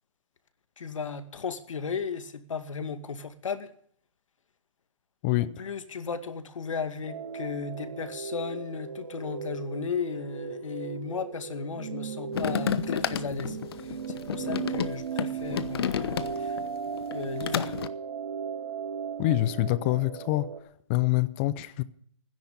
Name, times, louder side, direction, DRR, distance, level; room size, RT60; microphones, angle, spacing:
voice 1, 0.8-3.7 5.4-16.6 17.1-17.7, left 5 dB, 75° left, 2.2 m, -35 dB
sound 1, 7.1-20.6, right 6 dB, 60° right, 2.1 m, -36 dB
sound 2, 12.3-16.6 17.0-17.9, left 9 dB, 50° left, 1.0 m, -31 dB
voice 2, 19.2-20.5 20.9-21.8, left 16 dB, 25° left, 0.7 m, -25 dB
16.0 x 10.5 x 8.6 m
hypercardioid pair, 155°, 16 cm